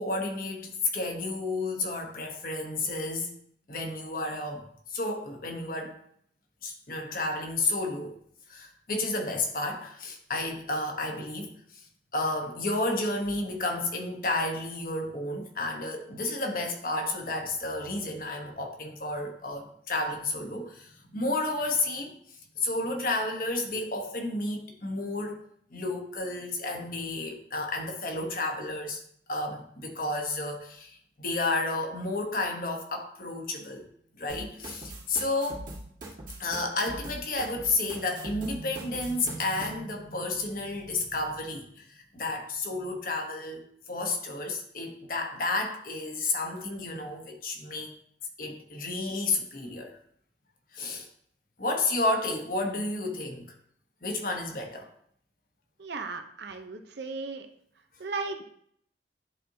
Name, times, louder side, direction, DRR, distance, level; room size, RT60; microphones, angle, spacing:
voice 1, 0.0-3.3 3.7-6.0 6.6-8.2 8.5-11.9 12.1-22.1 22.6-29.0 29.3-33.9 34.2-35.7 36.4-47.9 48.4-50.0 50.7-51.1 51.6-53.5 54.0-54.9, left 2 dB, 50° left, 2 dB, 1.1 m, -31 dB
sound 1, 34.3-39.7, right 1 dB, 45° right, 1.7 m, -42 dB
voice 2, 55.8-57.5 58.0-58.4, right 4 dB, 65° right, 7 dB, 0.7 m, -36 dB
10.5 x 4.2 x 2.8 m, 0.66 s
head